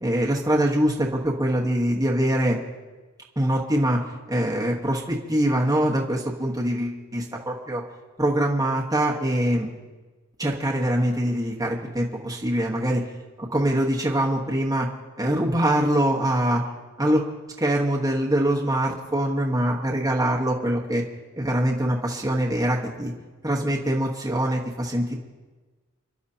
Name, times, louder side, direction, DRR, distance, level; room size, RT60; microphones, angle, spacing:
voice 1, 0.0-2.6 3.4-7.8 8.2-9.7 10.4-13.1 13.4-14.9 15.2-16.6 17.0-17.3 17.6-21.0 21.4-23.1 23.4-25.1, right 1 dB, 15° right, -2 dB, 1.2 m, -23 dB
29.5 x 11.5 x 2.8 m, 1.3 s
head